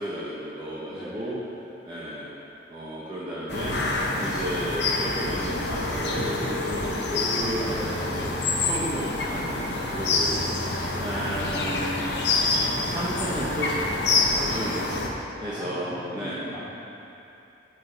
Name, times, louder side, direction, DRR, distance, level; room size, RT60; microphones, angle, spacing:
voice 1, 0.0-1.4 1.8-2.3 2.7-3.8 4.2-8.3 8.6-12.1 12.5-13.7 14.3-14.9 15.4-16.4, right 1 dB, 25° right, -9 dB, 0.9 m, -33 dB
voice 2, 0.9-1.4 7.7-8.0 15.3-16.7, equal, 5° right, -10 dB, 1.7 m, -40 dB
sound 1, 3.5-15.1, left 2 dB, 65° left, 0.9 m, -27 dB
14.0 x 4.9 x 3.3 m, 2.9 s
head